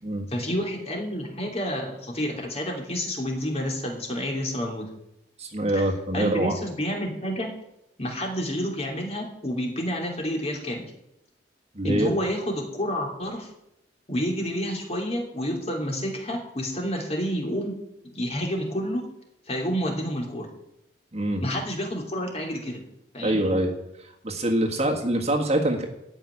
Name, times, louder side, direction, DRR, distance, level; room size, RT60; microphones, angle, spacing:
voice 1, 0.3-4.8 5.7-5.8 6.1-7.5 8.0-10.9 11.8-13.5 14.1-17.8 18.0-19.0 19.5-20.5 21.4-22.8 23.1-23.4, equal, 35° left, 1 dB, 2.9 m, -29 dB
voice 2, 5.4-6.6 11.7-12.1 21.1-21.4 23.2-23.7 24.2-25.9, right 1 dB, 35° right, 2 dB, 1.6 m, -24 dB
13.5 x 6.1 x 9.6 m, 0.85 s
head